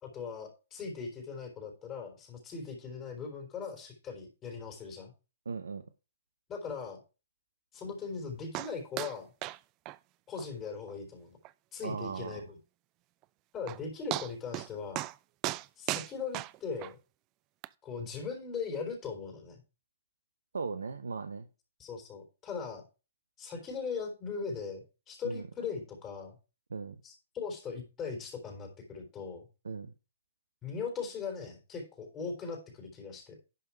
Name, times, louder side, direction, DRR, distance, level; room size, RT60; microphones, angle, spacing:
voice 1, 0.0-5.1 6.5-7.0 7.7-9.3 10.3-11.4 11.7-12.6 13.5-15.1 15.8-17.0 17.8-19.6 21.8-22.8 23.4-26.4 27.0-29.5 30.6-33.4, left 5 dB, 25° left, 3 dB, 3.8 m, -39 dB
voice 2, 5.5-5.8 11.8-12.4 20.5-21.5 25.2-25.4 26.7-27.0 29.6-29.9, right 4 dB, 75° right, 10 dB, 0.8 m, -37 dB
sound 1, 8.5-8.7 9.0-9.2 9.4-9.6 9.9-10.0 10.4-10.5 10.9-11.0 11.4-11.5 13.2-13.3 13.7-13.8 14.1-14.7 15.0-15.2 15.4-16.9 17.6-17.7, right 18 dB, 30° right, 0.4 m, -35 dB
11.5 x 5.6 x 4.6 m, 0.31 s
figure-of-eight pair, 120°, 0 cm